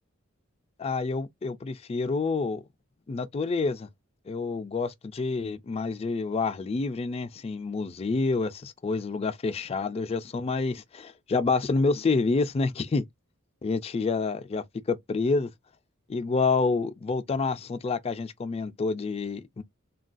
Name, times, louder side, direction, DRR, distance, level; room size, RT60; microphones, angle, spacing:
voice 1, 0.8-2.6 3.1-3.9 4.3-13.0 13.6-15.5 16.1-19.6, left 4 dB, 30° left, 0.3 m, -28 dB
3.5 x 2.3 x 2.4 m
head